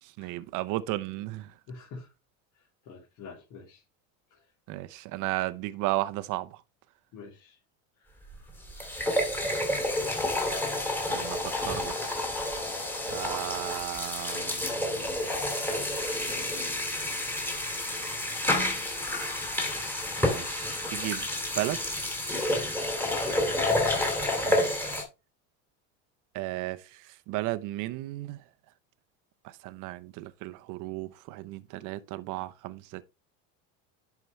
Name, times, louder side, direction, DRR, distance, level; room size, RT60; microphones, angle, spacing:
voice 1, 0.0-1.5 4.7-6.6 11.1-12.3 13.1-15.3 20.2-21.3 21.6-21.8 24.5-24.9 26.3-28.4 29.4-33.0, right 17 dB, 55° right, 0.8 m, -35 dB
voice 2, 1.7-2.1 2.8-3.8 4.3-4.4 7.1-7.6 8.0-8.6 23.0-23.5, left 4 dB, 60° left, 3.3 m, -46 dB
sound 1, 8.3-8.4 8.7-25.0, left 1 dB, 5° left, 2.3 m, -29 dB
10.5 x 4.7 x 3.2 m
supercardioid pair, 120°, 36 cm